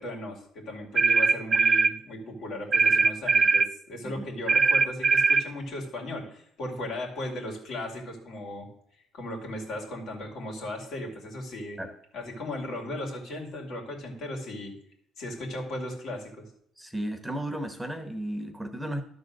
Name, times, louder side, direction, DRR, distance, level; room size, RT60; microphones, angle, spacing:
voice 1, 0.0-8.7 9.1-11.8 12.1-14.7 15.2-16.3, left 1 dB, 70° left, 0 dB, 2.7 m, -36 dB
sound 1, 0.9-1.9 2.7-3.7 4.5-5.5, right 4 dB, 40° right, 0.4 m, -21 dB
voice 2, 16.8-19.0, right 1 dB, 5° right, 6 dB, 1.0 m, -34 dB
12.0 x 4.0 x 6.5 m, 0.70 s
cardioid pair, 90°, 0 cm